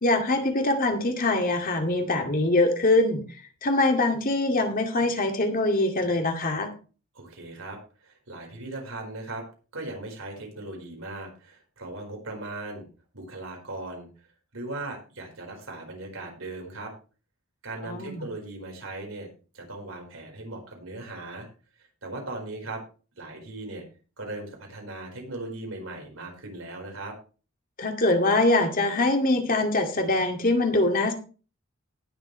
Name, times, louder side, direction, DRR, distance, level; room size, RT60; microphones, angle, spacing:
voice 1, 0.0-3.2 3.6-6.7 17.8-18.2 27.8-31.1, left 2 dB, 45° left, 4 dB, 2.3 m, -23 dB
voice 2, 7.1-9.5 9.7-12.9 13.1-14.1 14.5-16.9 17.6-19.3 19.5-21.5 22.0-22.8 23.2-23.8 24.2-27.1, right 2 dB, 85° right, 2 dB, 4.8 m, -38 dB
18.5 x 7.5 x 3.2 m, 0.35 s
head